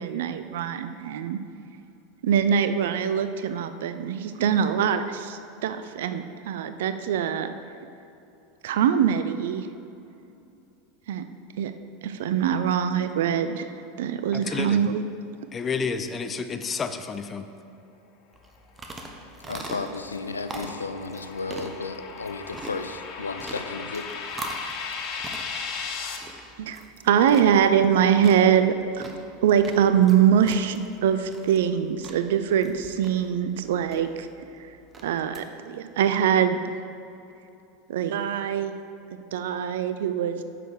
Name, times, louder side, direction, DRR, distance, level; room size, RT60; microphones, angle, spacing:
voice 1, 0.0-1.4 2.2-7.5 8.6-9.7 11.1-11.2 11.6-11.7 12.0-13.7 14.0-15.0 26.6-29.1 29.4-34.3 35.0-36.6 37.9-38.7 39.3-40.4, right 8 dB, 65° right, 0.5 m, -23 dB
voice 2, 14.3-14.8 15.5-17.5, left 5 dB, 25° left, 0.6 m, -30 dB
sound 1, 18.3-35.4, right 2 dB, 20° right, 1.1 m, -42 dB
sound 2, 19.3-26.2, left 5 dB, 45° left, 1.0 m, -37 dB
voice 3, 19.5-24.1, left 4 dB, 80° left, 0.5 m, -34 dB
9.9 x 6.7 x 4.8 m
figure-of-eight pair, 80°, 0 cm